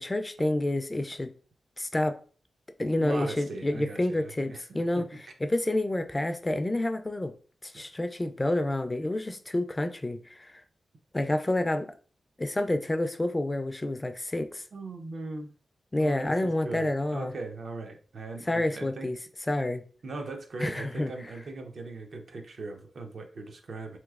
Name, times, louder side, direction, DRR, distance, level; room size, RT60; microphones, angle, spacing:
voice 1, 0.0-1.3 1.8-2.2 2.8-5.0 5.4-7.3 7.6-10.6 11.1-11.9 12.4-14.6 15.9-17.3 18.4-19.2 19.5-19.8 20.6-21.1, left 1 dB, 20° left, 0.3 m, -28 dB
voice 2, 2.9-5.2 14.7-15.5 16.0-19.1 20.0-24.0, right 3 dB, 70° right, 0.6 m, -39 dB
3.2 x 3.0 x 2.3 m
cardioid pair, 75°, 0 cm